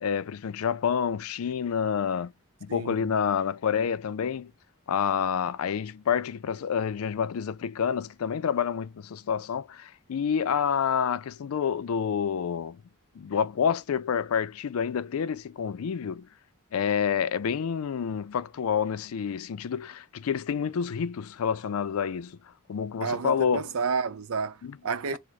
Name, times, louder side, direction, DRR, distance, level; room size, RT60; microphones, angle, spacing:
voice 1, 0.0-2.3 2.6-4.5 4.9-12.8 13.2-16.3 16.7-22.4 22.7-23.7 24.6-24.8, left 7 dB, 80° left, 0.4 m, -28 dB
voice 2, 2.7-3.1 23.0-25.2, right 5 dB, 85° right, 0.6 m, -31 dB
4.8 x 2.1 x 4.1 m
head